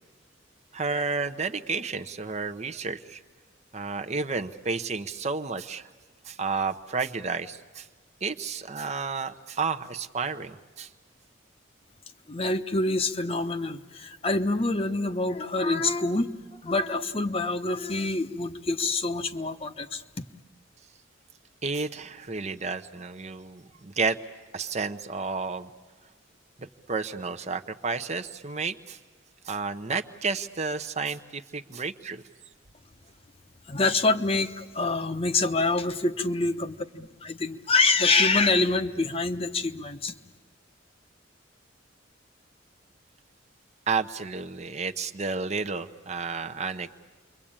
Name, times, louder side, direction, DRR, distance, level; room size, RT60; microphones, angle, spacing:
voice 1, 0.7-3.2 3.7-5.9 6.2-7.9 8.2-10.9 21.6-24.2 24.5-25.7 26.6-29.0 29.4-32.2 43.9-46.9, right 4 dB, 35° right, 7 dB, 0.8 m, -31 dB
voice 2, 12.3-16.3 16.6-20.3 33.7-40.1, left 3 dB, 30° left, 8 dB, 0.9 m, -26 dB
29.0 x 23.5 x 8.8 m, 1.4 s
head